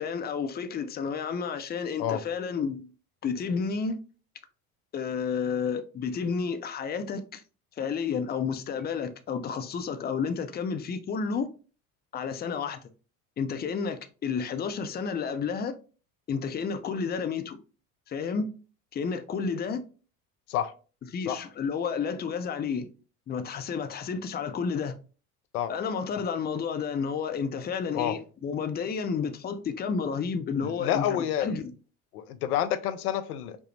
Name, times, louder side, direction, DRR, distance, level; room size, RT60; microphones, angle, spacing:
voice 1, 0.0-2.9 3.2-4.0 4.9-7.4 7.8-11.5 12.1-12.8 13.4-15.7 16.3-17.6 18.1-18.5 18.9-19.8 21.1-22.9 23.3-25.0 25.7-31.7, left 6 dB, 20° left, 0.5 m, -31 dB
voice 2, 30.6-31.5 32.1-33.6, left 10 dB, 85° left, 0.5 m, -28 dB
5.1 x 2.0 x 3.1 m
hypercardioid pair, 70°, 44 cm